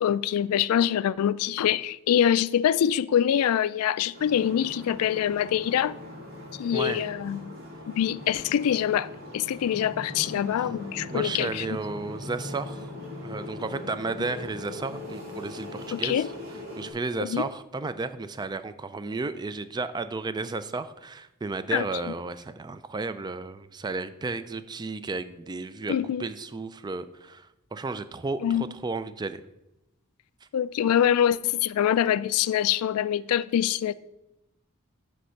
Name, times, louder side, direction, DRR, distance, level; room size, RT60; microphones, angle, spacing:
voice 1, 0.0-6.0 6.6-7.5 7.9-11.8 15.9-16.3 17.2-17.5 21.7-22.1 25.9-26.2 28.4-28.6 30.5-33.9, left 10 dB, 85° left, 0.3 m, -25 dB
sound 1, 4.1-16.9, left 2 dB, 45° right, 2.7 m, -40 dB
voice 2, 6.7-7.1 11.1-12.9 13.2-16.3 16.8-25.9 26.2-29.4, right 3 dB, 20° right, 0.3 m, -33 dB
9.5 x 3.4 x 6.4 m
head